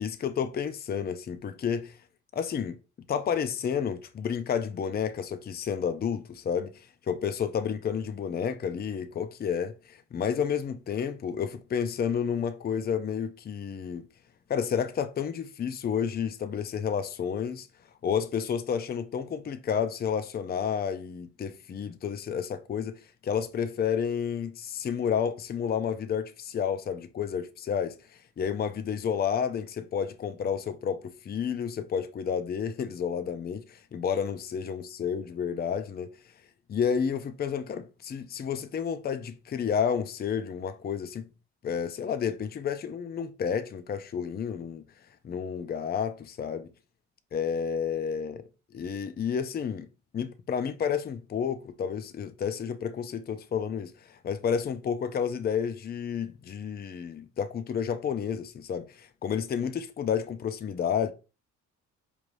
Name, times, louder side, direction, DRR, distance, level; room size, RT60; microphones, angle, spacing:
voice 1, 0.0-2.0 2.3-2.8 3.1-14.1 14.5-17.7 18.0-36.1 36.7-41.3 41.6-44.8 45.2-46.7 47.3-49.9 50.1-61.1, left 7 dB, 30° left, 0.5 m, -31 dB
4.7 x 3.3 x 2.6 m
cardioid pair, 90°, 30 cm